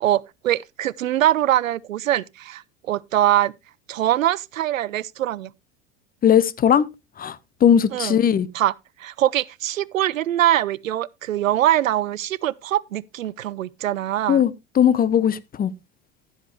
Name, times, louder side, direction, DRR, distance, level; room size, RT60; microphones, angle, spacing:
voice 1, 0.0-2.6 2.9-3.5 3.9-5.5 7.9-8.2 8.5-8.7 9.0-14.4, right 13 dB, 85° right, 0.5 m, -22 dB
voice 2, 6.2-6.9 7.2-8.5 14.3-15.7, left 9 dB, 25° left, 0.8 m, -18 dB
15.0 x 7.3 x 3.0 m
hypercardioid pair, 80°, 39 cm